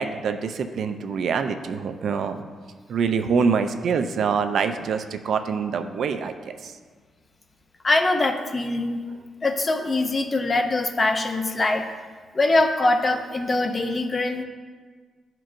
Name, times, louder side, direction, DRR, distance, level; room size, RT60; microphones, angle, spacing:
voice 1, 0.0-2.4 2.9-6.7, right 5 dB, 60° right, 8 dB, 0.4 m, -25 dB
voice 2, 7.8-9.0 9.4-11.9 12.3-14.4, left 2 dB, 25° left, 5 dB, 0.5 m, -23 dB
12.0 x 4.5 x 2.5 m, 1.5 s
cardioid pair, 155°, 0 cm